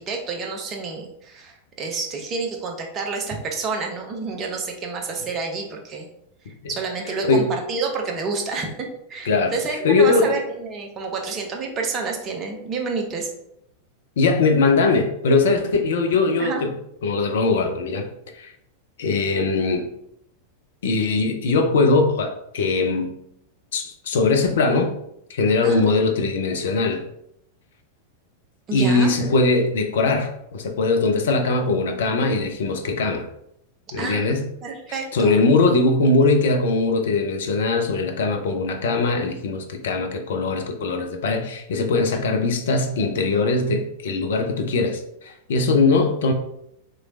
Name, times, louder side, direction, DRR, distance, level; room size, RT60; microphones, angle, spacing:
voice 1, 0.0-6.1 6.5-13.3 16.4-16.6 25.6-25.9 28.7-29.1 34.0-35.4, right 4 dB, 30° right, 2 dB, 0.7 m, -29 dB
voice 2, 9.8-10.3 14.2-16.7 17.0-18.1 18.3-18.5 19.0-19.8 20.8-23.1 23.7-24.9 25.3-27.0 28.7-33.3 33.9-34.4 35.1-46.3, left 3 dB, 60° left, 4 dB, 0.5 m, -21 dB
3.1 x 3.0 x 2.5 m, 0.76 s
figure-of-eight pair, 90°, 0 cm